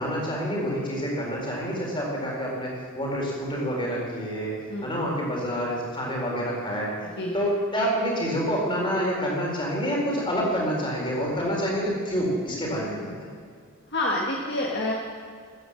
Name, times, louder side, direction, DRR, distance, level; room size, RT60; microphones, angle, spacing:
voice 1, 0.0-7.1 7.3-13.3, equal, 25° left, -2 dB, 4.0 m, -27 dB
voice 2, 13.9-14.9, left 1 dB, 55° left, -1 dB, 1.6 m, -27 dB
14.0 x 9.4 x 7.6 m, 2.1 s
head